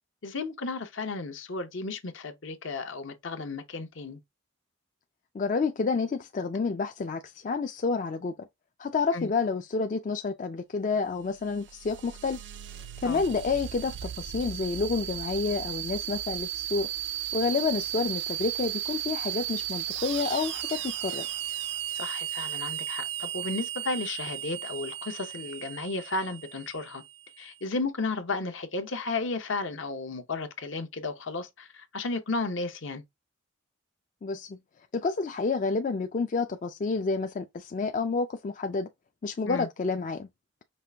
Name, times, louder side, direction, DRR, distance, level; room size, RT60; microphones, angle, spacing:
voice 1, 0.2-4.2 9.1-9.3 13.0-13.2 21.9-27.0 27.4-33.0 39.5-39.7, left 3 dB, 70° left, 0.8 m, -33 dB
voice 2, 5.3-8.3 8.8-12.4 12.7-16.9 17.3-21.3 34.2-34.6 34.9-38.9 39.2-40.3, left 4 dB, 40° left, 0.3 m, -29 dB
sound 1, 11.1-27.4, right 12 dB, 60° right, 0.4 m, -35 dB
5.3 x 2.4 x 3.3 m
head